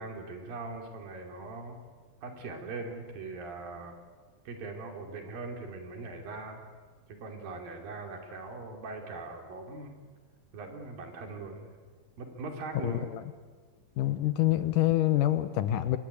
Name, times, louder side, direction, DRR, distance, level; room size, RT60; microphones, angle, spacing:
voice 1, 0.0-1.8 2.2-3.9 4.5-6.6 7.2-10.0 10.5-11.7 12.2-13.1, right 3 dB, 65° right, 3 dB, 4.8 m, -41 dB
voice 2, 12.7-13.2 14.0-16.0, left 14 dB, 70° left, 12 dB, 2.3 m, -26 dB
27.5 x 22.0 x 8.4 m, 1.4 s
omnidirectional pair, 4.4 m